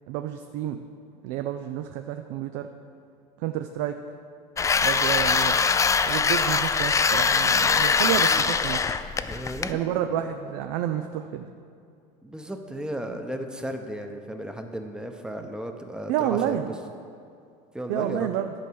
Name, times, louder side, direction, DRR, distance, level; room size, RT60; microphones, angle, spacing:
voice 1, 0.1-0.8 1.2-2.7 3.4-3.9 4.8-5.6 6.1-9.0 9.7-11.5 16.1-16.7 17.9-18.5, right 11 dB, 70° right, 7 dB, 0.5 m, -29 dB
sound 1, 4.6-9.7, left 5 dB, 20° left, 0.3 m, -22 dB
voice 2, 9.3-9.8 12.2-16.6 17.7-18.3, equal, 5° right, 5 dB, 0.8 m, -34 dB
11.5 x 4.6 x 6.2 m, 2.4 s
supercardioid pair, 105°, 18 cm